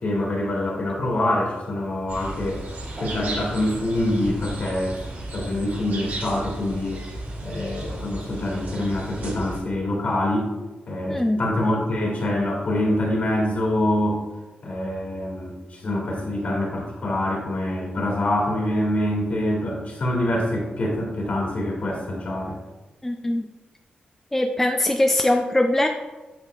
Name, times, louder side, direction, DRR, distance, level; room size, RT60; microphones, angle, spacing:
voice 1, 0.0-2.6 3.0-5.0 5.3-7.0 7.4-10.5 10.9-14.2 14.6-22.5, left 1 dB, 55° left, -3 dB, 2.2 m, -25 dB
sound 1, 2.1-9.6, right 1 dB, 75° right, 2.1 m, -34 dB
voice 2, 11.1-11.4 23.0-23.5 24.3-25.9, left 1 dB, 10° left, 3 dB, 0.4 m, -21 dB
8.8 x 5.7 x 2.4 m, 1.2 s
wide cardioid pair, 105°, 3 cm